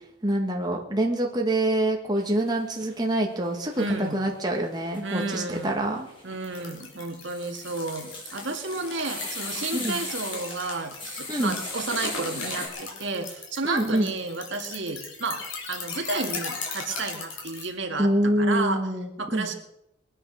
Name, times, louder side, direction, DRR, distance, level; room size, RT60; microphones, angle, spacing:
voice 1, 0.2-6.1 9.7-10.0 11.3-11.6 13.6-14.1 18.0-19.5, right 1 dB, 20° right, 0 dB, 1.8 m, -26 dB
sound 1, 2.2-3.2 3.4-12.7, left 2 dB, 25° left, 5.7 m, -39 dB
voice 2, 3.8-4.2 5.0-5.7 6.2-15.4 15.7-18.9 19.2-19.5, right 3 dB, 60° right, 4 dB, 2.1 m, -32 dB
sound 2, 6.4-17.7, left 4 dB, 70° left, 4.8 m, -38 dB
22.0 x 10.0 x 6.5 m, 0.84 s
head